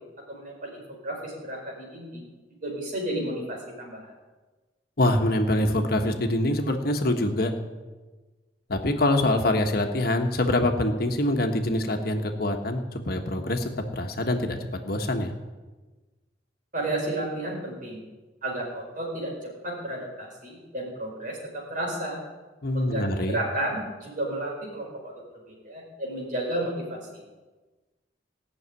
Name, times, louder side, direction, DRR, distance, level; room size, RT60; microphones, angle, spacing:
voice 1, 0.3-2.2 2.6-4.1 16.7-18.0 18.4-19.3 19.6-21.4 21.7-22.2 22.7-25.1 25.5-27.0, right 1 dB, 50° right, -2 dB, 5.1 m, -32 dB
voice 2, 5.0-7.5 8.7-15.3 22.6-23.4, left 1 dB, 60° left, 5 dB, 1.3 m, -25 dB
17.0 x 6.5 x 9.5 m, 1.2 s
head